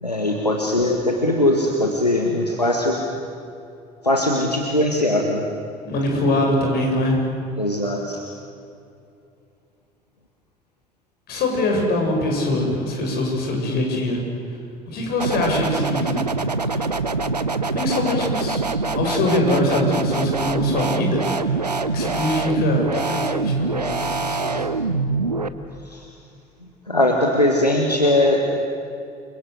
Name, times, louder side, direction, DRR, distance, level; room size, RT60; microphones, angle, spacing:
voice 1, 0.0-3.0 4.0-5.4 7.6-8.2 25.9-26.1 26.9-28.4, left 1 dB, 90° left, 1 dB, 1.7 m, -20 dB
voice 2, 5.8-7.3 11.3-14.2 14.9-16.3 16.7-16.9 17.6-18.6 18.9-21.6 21.9-24.7, left 1 dB, 50° left, 1 dB, 7.1 m, -23 dB
sound 1, 15.2-25.5, right 3 dB, 90° right, 0.8 m, -24 dB
29.0 x 22.5 x 8.2 m, 2.5 s
figure-of-eight pair, 55°, 20 cm